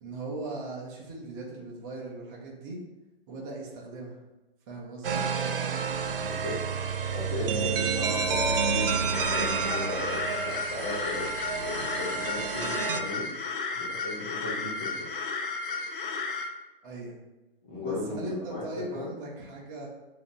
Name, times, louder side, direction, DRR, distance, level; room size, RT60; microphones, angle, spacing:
voice 1, 0.0-2.8 3.3-4.2 4.7-5.2 16.8-17.2 17.8-19.9, right 2 dB, 20° right, -3 dB, 0.7 m, -39 dB
sound 1, 5.0-13.0, right 5 dB, 65° right, 0.6 m, -29 dB
voice 2, 6.1-6.6 7.1-13.3 13.7-15.1 17.6-19.1, left 2 dB, 10° left, -10 dB, 0.4 m, -36 dB
sound 2, 9.1-16.5, left 4 dB, 60° left, 0.6 m, -33 dB
7.0 x 2.9 x 2.6 m, 1.1 s
hypercardioid pair, 160°, 30 cm